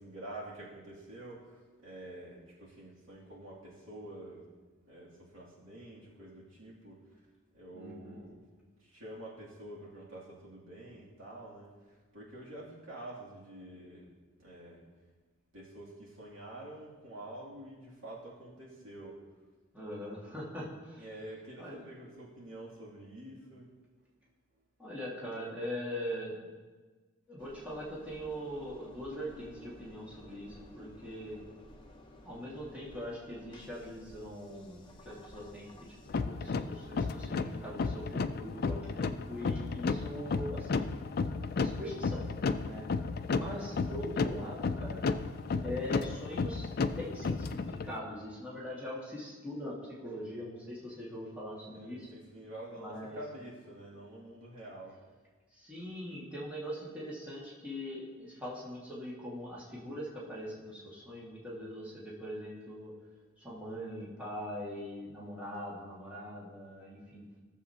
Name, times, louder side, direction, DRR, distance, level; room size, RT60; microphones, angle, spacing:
voice 1, 0.0-4.4 4.9-7.0 7.5-8.4 8.8-14.1 14.4-14.8 15.5-19.2 21.0-23.7 43.3-43.8 51.7-55.0, right 1 dB, 70° right, -6 dB, 2.6 m, -48 dB
voice 2, 7.7-8.2 19.7-21.0 21.6-21.8 24.8-26.5 27.3-31.4 32.2-35.9 36.2-40.9 41.6-42.2 42.6-42.8 43.3-45.3 45.6-46.7 47.0-52.1 52.8-53.2 55.5-62.9 63.4-67.3, equal, 5° right, -8 dB, 1.9 m, -42 dB
Engine, 27.4-36.1, left 1 dB, 25° left, 0.9 m, -54 dB
sound 1, 36.1-47.9, left 4 dB, 45° left, 0.4 m, -33 dB
15.5 x 7.1 x 2.8 m, 1.4 s
head